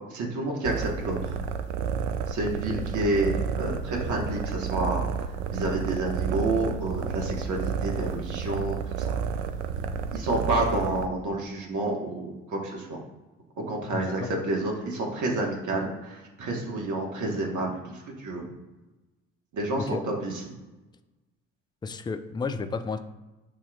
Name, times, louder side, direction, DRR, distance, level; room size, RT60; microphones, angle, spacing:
voice 1, 0.1-1.4 2.3-5.0 5.5-9.2 10.1-13.0 13.6-18.5 19.5-20.3, right 2 dB, 55° right, 0 dB, 1.4 m, -29 dB
purring happy cat, 0.6-11.1, right 6 dB, 70° right, 0.5 m, -31 dB
voice 2, 13.9-14.3 19.8-20.0 21.8-23.0, left 4 dB, 15° left, 9 dB, 0.4 m, -32 dB
7.2 x 2.9 x 2.4 m, 1.1 s
hypercardioid pair, 50°, 36 cm